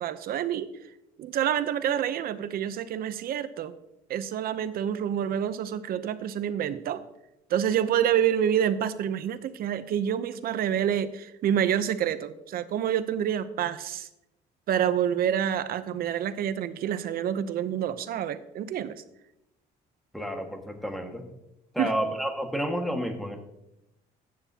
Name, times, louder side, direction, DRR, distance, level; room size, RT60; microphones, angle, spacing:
voice 1, 0.0-0.7 1.2-3.7 4.1-7.0 7.5-14.1 14.7-19.0 21.8-21.9, right 9 dB, 60° right, 13 dB, 0.8 m, -27 dB
voice 2, 20.1-21.3 21.7-23.4, equal, ahead, 3 dB, 1.8 m, -30 dB
14.0 x 9.6 x 2.9 m, 0.88 s
cardioid pair, 110°, 17 cm